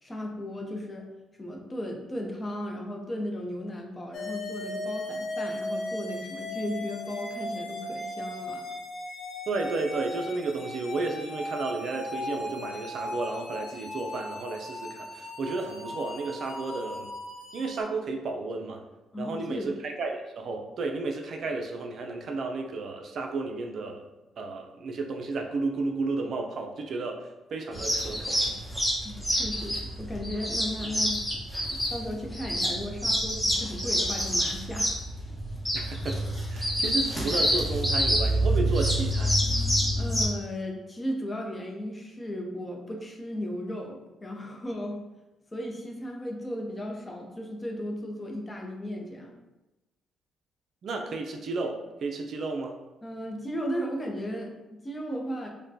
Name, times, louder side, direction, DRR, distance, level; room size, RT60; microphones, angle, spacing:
voice 1, 0.0-1.1 1.4-8.6 19.1-19.7 29.0-31.2 31.7-34.9 40.0-45.0 45.5-49.3 53.0-55.5, equal, 20° left, 1 dB, 0.7 m, -35 dB
sound 1, 4.1-17.8, left 1 dB, 55° left, 0.6 m, -37 dB
voice 2, 9.5-17.1 17.5-18.8 19.2-24.0 24.4-27.2 27.5-28.4 35.7-36.2 36.5-39.4 50.8-52.8, right 3 dB, 60° right, 3 dB, 0.4 m, -32 dB
sound 2, 27.7-40.2, equal, 5° left, 1.0 m, -27 dB
5.0 x 2.2 x 2.7 m, 1.0 s
cardioid pair, 90°, 0 cm